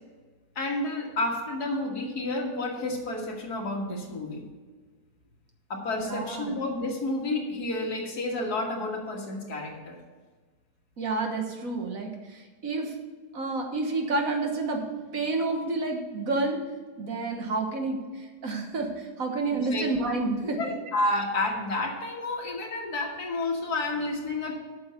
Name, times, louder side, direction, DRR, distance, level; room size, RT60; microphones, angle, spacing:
voice 1, 0.6-4.4 5.7-10.0 19.5-19.8 20.4-24.6, left 2 dB, 75° left, 0 dB, 2.2 m, -30 dB
voice 2, 6.0-6.6 11.0-12.9 13.3-16.6 17.0-20.7, right 3 dB, 60° right, 2 dB, 1.7 m, -30 dB
8.0 x 6.4 x 8.1 m, 1.4 s
omnidirectional pair, 1.7 m